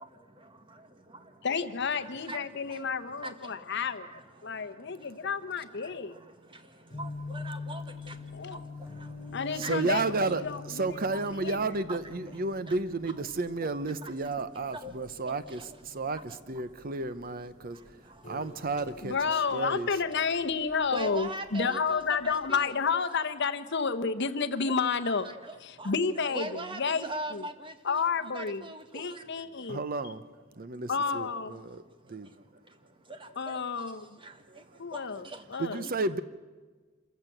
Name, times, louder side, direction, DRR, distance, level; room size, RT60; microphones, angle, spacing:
voice 1, 1.4-4.1 4.4-6.1 8.3-8.6 9.3-11.6 19.0-25.3 25.6-27.4 27.8-28.6 28.9-29.8 30.9-31.6 33.4-34.0 34.8-35.8, left 5 dB, 60° left, 10 dB, 1.0 m, -31 dB
sound 1, 6.9-22.6, left 3 dB, 40° left, 4.2 m, -46 dB
voice 2, 7.0-8.1 9.6-9.8 11.9-12.0 14.0-14.1 14.8-14.9 15.3-15.4 20.9-22.8 24.6-24.7 25.0-25.9 26.2-29.2 33.2-33.5 34.2-34.3 34.9-35.0, right 1 dB, 25° right, 8 dB, 1.5 m, -40 dB
voice 3, 9.5-18.0 18.2-20.0 29.6-30.2 30.6-32.3 34.5-34.6 35.6-36.2, right 3 dB, 45° right, 14 dB, 0.7 m, -32 dB
26.5 x 15.0 x 7.9 m, 1.4 s
head